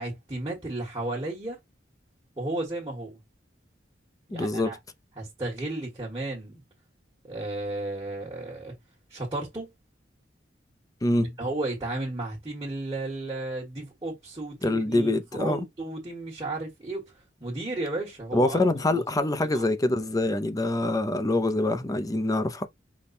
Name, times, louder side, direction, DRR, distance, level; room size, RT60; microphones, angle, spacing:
voice 1, 0.0-1.6 2.4-3.2 4.3-4.8 5.2-6.6 7.2-8.7 9.1-9.7 11.1-17.1 17.4-18.6 18.9-19.0 19.3-19.6, right 2 dB, 20° right, 1.6 m, -33 dB
voice 2, 4.3-4.8 11.0-11.4 14.6-15.7 18.3-22.6, left 2 dB, 20° left, 0.5 m, -25 dB
5.2 x 2.3 x 4.2 m
head